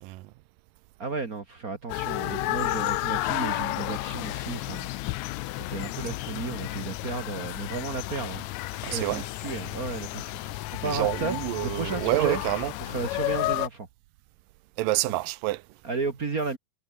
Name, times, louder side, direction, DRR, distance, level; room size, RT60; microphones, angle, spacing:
voice 1, 0.0-0.3 8.8-9.3 10.8-12.7 14.8-15.7, right 18 dB, 90° right, 2.4 m, -28 dB
voice 2, 1.0-4.9 5.7-8.4 8.9-11.4 11.6-12.4 12.8-13.9 15.0-15.1 15.8-16.6, right 4 dB, 35° right, 1.6 m, -33 dB
sound 1, 1.9-13.7, left 18 dB, 85° left, 1.6 m, -32 dB
omnidirectional pair, 3.8 m